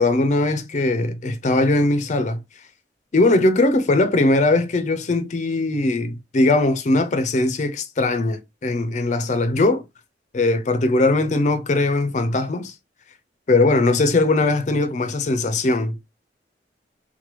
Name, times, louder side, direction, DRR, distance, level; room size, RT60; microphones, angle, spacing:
voice 1, 0.0-2.4 3.1-9.8 10.3-12.7 13.5-16.0, left 2 dB, 40° left, 0.4 m, -20 dB
3.0 x 2.2 x 2.9 m
head